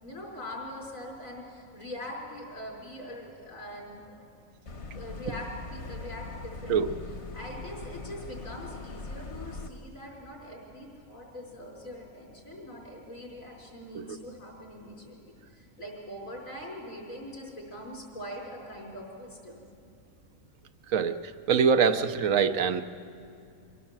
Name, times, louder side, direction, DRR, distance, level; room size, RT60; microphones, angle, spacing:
voice 1, 0.0-4.3 4.9-6.9 7.3-19.7, left 1 dB, 80° left, -2 dB, 5.2 m, -42 dB
sound 1, 4.7-9.7, left 3 dB, 55° left, 1.5 m, -41 dB
voice 2, 21.5-22.8, right 6 dB, 80° right, 9 dB, 1.2 m, -24 dB
24.5 x 16.5 x 7.4 m, 2.6 s
omnidirectional pair, 1.4 m